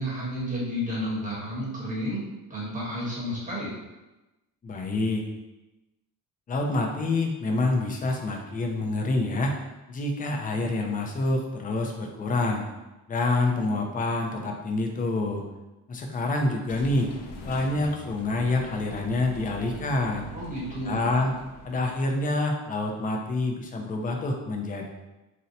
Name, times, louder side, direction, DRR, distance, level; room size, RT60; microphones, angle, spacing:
voice 1, 0.0-2.2 2.5-3.7 20.3-21.1, equal, 20° right, -6 dB, 1.1 m, -31 dB
voice 2, 4.6-5.3 6.5-9.5 9.9-12.6 13.1-15.4 15.9-17.1 17.4-20.3 20.9-21.3 21.6-24.9, left 2 dB, 25° left, 1 dB, 0.3 m, -27 dB
sound 1, 16.7-22.2, equal, 85° left, 0.6 m, -43 dB
2.7 x 2.0 x 3.9 m, 1.0 s
cardioid pair, 135°, 38 cm